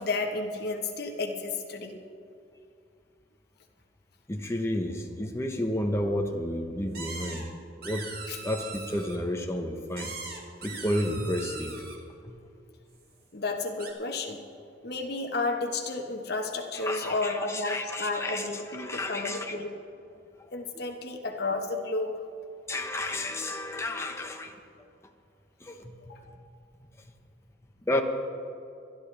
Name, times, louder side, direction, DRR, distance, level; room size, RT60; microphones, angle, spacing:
voice 1, 0.0-2.0 8.3-8.4 13.3-14.4 14.8-19.7 20.5-22.2 26.1-26.2, left 3 dB, 55° left, 2 dB, 1.3 m, -32 dB
voice 2, 4.3-7.5 7.8-8.1 8.4-10.1 10.6-11.8 12.3-12.4 16.7-18.5 18.7-19.5 22.7-24.5 25.6-25.9 27.8-28.0, left 1 dB, 15° left, 3 dB, 0.9 m, -31 dB
sound 1, 6.9-7.4 7.8-9.2 9.9-12.0 13.8-13.9, right 4 dB, 50° right, 1.7 m, -40 dB
24.5 x 11.0 x 3.4 m, 2.5 s
head